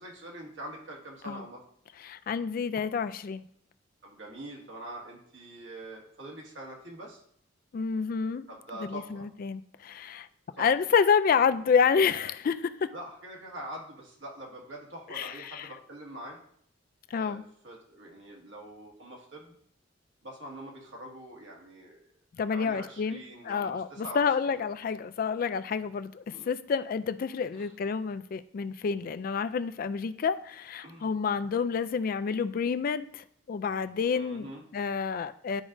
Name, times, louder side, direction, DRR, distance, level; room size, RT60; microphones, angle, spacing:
voice 1, 0.0-1.6 4.0-7.2 8.5-9.3 10.5-10.7 12.9-16.4 17.1-19.6 20.2-22.0 22.5-24.6 26.3-26.5 27.5-27.7 30.8-31.1 34.1-34.6, right 1 dB, 70° right, -1 dB, 1.7 m, -44 dB
voice 2, 2.0-3.4 7.7-8.5 8.8-10.3 10.6-12.9 15.1-15.7 17.1-17.4 22.4-34.5 34.7-35.6, left 6 dB, 45° left, 12 dB, 0.3 m, -29 dB
10.5 x 4.9 x 2.6 m, 0.67 s
head